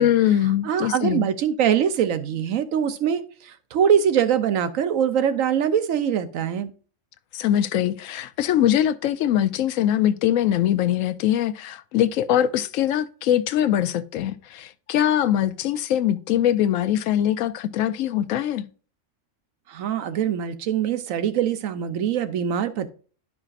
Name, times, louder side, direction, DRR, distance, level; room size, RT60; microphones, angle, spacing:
voice 1, 0.0-1.3 7.3-18.7, left 11 dB, 85° left, 1.0 m, -22 dB
voice 2, 0.6-6.7 19.7-22.9, right 8 dB, 90° right, 1.1 m, -23 dB
11.5 x 4.9 x 2.4 m
omnidirectional pair, 1.3 m